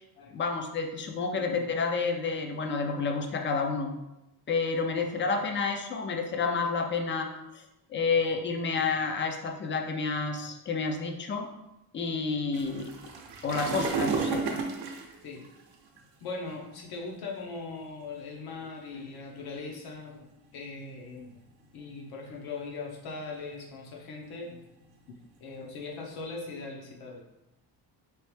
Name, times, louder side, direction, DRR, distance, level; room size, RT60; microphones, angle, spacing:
voice 1, 0.3-3.9 4.5-7.3 7.5-7.6 7.9-11.5 11.9-12.9 13.4-14.4, left 4 dB, 30° left, 4 dB, 0.4 m, -29 dB
sound 1, 12.5-16.0 16.8-17.0 17.7-17.8 18.1-18.3 18.9-19.4 20.2-21.3 21.8-22.3 22.7-23.1 23.5-26.2, right 4 dB, 65° right, 0.7 m, -34 dB
voice 2, 16.2-21.4 21.7-24.6 25.1-27.2, left 3 dB, 70° left, -1 dB, 0.9 m, -40 dB
3.2 x 3.0 x 3.2 m, 0.94 s
cardioid pair, 130°, 40 cm